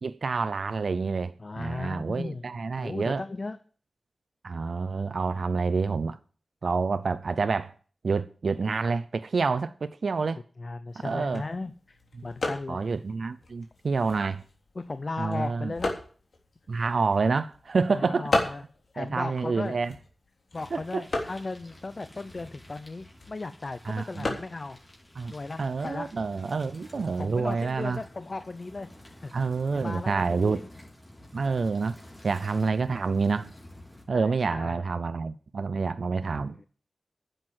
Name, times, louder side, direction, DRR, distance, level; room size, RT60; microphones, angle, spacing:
voice 1, 0.0-3.2 4.4-6.2 6.6-7.7 8.0-10.4 11.0-11.4 12.7-14.4 15.2-15.7 16.7-18.3 19.0-19.9 20.7-21.0 23.8-24.4 25.2-25.3 25.6-28.0 29.3-30.6 31.3-32.0 32.2-33.5 34.1-36.7, right 4 dB, 75° right, 0.5 m, -28 dB
voice 2, 1.4-3.6 10.6-12.8 14.7-15.9 17.9-18.6 18.9-19.8 20.5-24.8 25.3-26.1 27.0-29.3 29.7-30.6 34.1-34.8 36.4-36.7, left 3 dB, 50° left, 0.8 m, -36 dB
sound 1, 10.9-26.4, left 2 dB, 70° left, 3.3 m, -37 dB
sound 2, 20.5-34.0, left 1 dB, 30° left, 4.7 m, -51 dB
11.0 x 7.9 x 7.6 m
cardioid pair, 55°, 0 cm